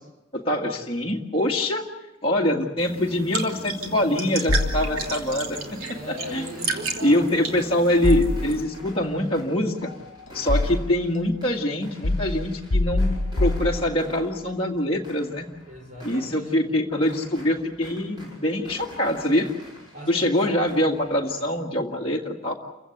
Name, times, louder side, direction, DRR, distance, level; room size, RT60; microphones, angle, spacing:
voice 1, 0.3-1.9 2.2-6.0 6.3-6.5 7.0-9.9 10.3-15.5 16.0-19.5 20.1-22.5, left 1 dB, 25° left, -2 dB, 1.9 m, -24 dB
sound 1, 2.8-8.6, right 4 dB, 80° right, 3.0 m, -33 dB
sound 2, 4.1-21.6, equal, 20° right, 6.8 m, -47 dB
sound 3, 4.5-5.4 8.0-8.9 9.8-11.1 12.0-14.3, left 2 dB, 65° left, 1.0 m, -25 dB
voice 2, 5.8-7.7 15.6-16.8 19.9-20.7, left 1 dB, 40° right, 1 dB, 5.5 m, -39 dB
29.0 x 16.0 x 8.6 m, 1.0 s
head